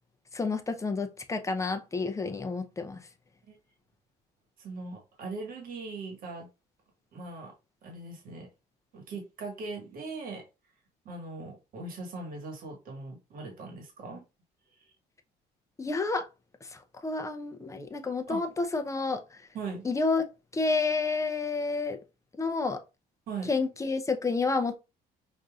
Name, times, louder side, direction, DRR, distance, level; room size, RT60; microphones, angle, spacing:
voice 1, 0.3-3.0 15.8-16.3 17.0-19.2 19.8-20.2 20.5-22.0 22.4-22.8 23.5-24.8, left 3 dB, 20° left, 0.6 m, -29 dB
voice 2, 4.6-6.5 7.1-7.5 7.8-8.5 8.9-10.4 11.0-14.2 14.8-14.9 18.3-18.4 19.5-19.8 23.3-23.5, right 3 dB, 60° right, 1.5 m, -40 dB
5.3 x 2.6 x 2.4 m
cardioid pair, 110°, 17 cm